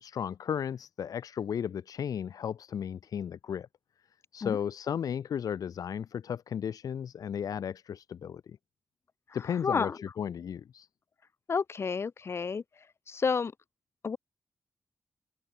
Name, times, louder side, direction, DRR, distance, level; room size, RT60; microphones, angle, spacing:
voice 1, 0.0-3.7 4.3-8.6 9.3-9.9 10.2-10.9, left 8 dB, 90° left, 0.9 m, -34 dB
voice 2, 9.5-10.0 11.5-13.5 14.0-14.2, left 5 dB, 45° left, 0.8 m, -31 dB
wide cardioid pair, 145°, 6 cm